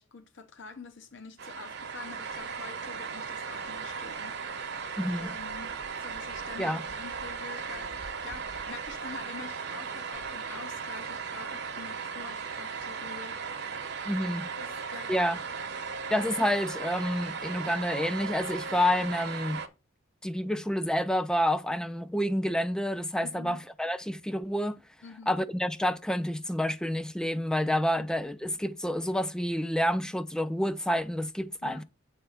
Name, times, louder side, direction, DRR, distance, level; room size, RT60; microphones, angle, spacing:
voice 1, 0.0-4.4 5.1-7.9 8.2-13.4 14.6-15.1 23.2-23.6 25.0-25.3 28.0-28.1 31.6-31.8, left 4 dB, 60° left, 0.8 m, -46 dB
sound 1, 1.4-19.7, right 5 dB, 55° right, 0.9 m, -37 dB
voice 2, 5.0-5.3 6.6-6.8 14.1-14.5 15.1-15.4 16.1-19.6 20.2-24.8 25.3-31.8, equal, 5° left, 0.4 m, -29 dB
8.4 x 3.3 x 5.6 m
head